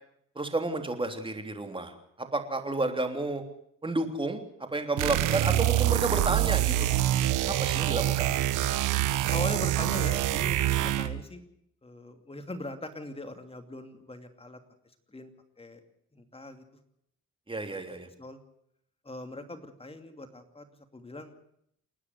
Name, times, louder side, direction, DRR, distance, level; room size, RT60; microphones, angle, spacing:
voice 1, 0.3-1.9 2.2-3.4 3.8-4.4 4.7-6.9 7.4-8.3 17.5-18.1, right 2 dB, 15° right, 6 dB, 3.3 m, -31 dB
sound 1, 5.0-11.2, right 13 dB, 85° right, 1.2 m, -26 dB
voice 2, 9.3-11.4 11.8-14.6 15.1-15.3 15.6-15.8 16.1-16.6 17.7-17.8 18.2-18.4 19.0-20.7 20.9-21.3, left 2 dB, 20° left, 7 dB, 2.7 m, -40 dB
29.0 x 9.8 x 9.6 m, 0.74 s
cardioid pair, 90°, 30 cm